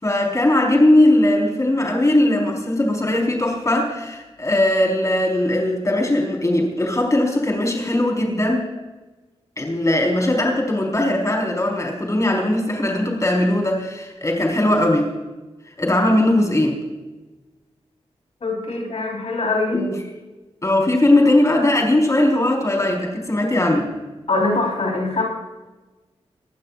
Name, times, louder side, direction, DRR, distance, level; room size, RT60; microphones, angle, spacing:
voice 1, 0.0-8.7 9.6-15.1 15.8-16.8 19.7-20.0 20.6-23.9, left 1 dB, 30° left, 1 dB, 4.8 m, -19 dB
voice 2, 18.4-19.9 24.3-25.3, left 3 dB, 70° left, 0 dB, 4.5 m, -22 dB
23.0 x 17.0 x 2.6 m, 1.2 s
cardioid pair, 60°, 11 cm